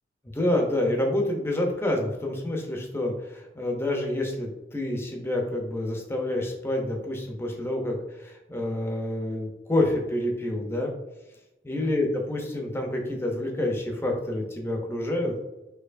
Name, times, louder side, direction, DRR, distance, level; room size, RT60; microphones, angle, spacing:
voice 1, 0.3-10.9 11.7-15.4, left 1 dB, 15° left, 1 dB, 0.6 m, -28 dB
4.4 x 2.8 x 2.5 m, 1.0 s
head